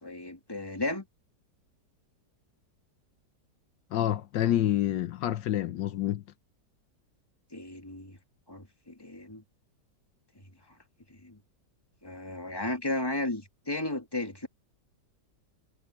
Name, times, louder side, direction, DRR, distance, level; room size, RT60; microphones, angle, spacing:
voice 1, 0.0-1.0 7.5-8.2 8.5-9.4 11.1-11.4 12.0-14.5, left 2 dB, 15° left, 2.6 m, -34 dB
voice 2, 3.9-6.2, left 12 dB, 80° left, 1.5 m, -28 dB
omnidirectional pair, 1.9 m